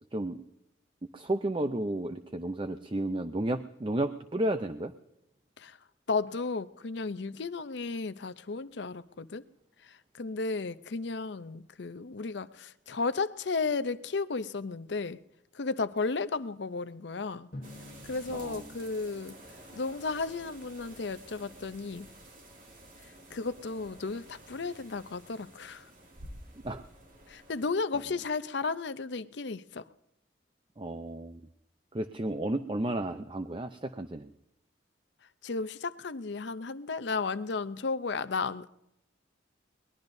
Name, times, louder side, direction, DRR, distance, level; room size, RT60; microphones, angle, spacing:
voice 1, 1.1-4.9 18.3-18.8 26.6-26.8 30.8-31.4 31.9-34.3, right 1 dB, 25° right, 9 dB, 0.6 m, -32 dB
voice 2, 6.1-9.5 9.8-15.2 15.5-17.5 18.0-19.4 19.7-22.1 23.0-25.9 27.3-29.9 35.4-38.7, left 4 dB, 60° left, 14 dB, 0.6 m, -34 dB
Drum, 17.5-20.2, left 1 dB, 45° left, 1.4 m, -49 dB
sound 1, 17.6-27.7, right 1 dB, 45° right, 2.4 m, -51 dB
22.5 x 20.0 x 2.7 m, 0.85 s
head